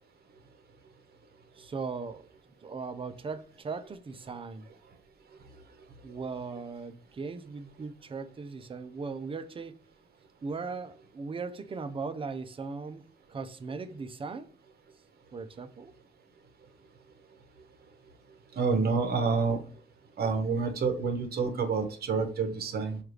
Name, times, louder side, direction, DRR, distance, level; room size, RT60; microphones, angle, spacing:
voice 1, 1.5-2.3 2.6-4.7 6.0-9.8 10.4-14.5 15.3-15.9, right 4 dB, 25° right, 0.5 m, -38 dB
voice 2, 18.5-19.6 20.2-23.0, right 4 dB, 50° right, 1.0 m, -28 dB
4.6 x 2.4 x 3.2 m
cardioid pair, 90°, 20 cm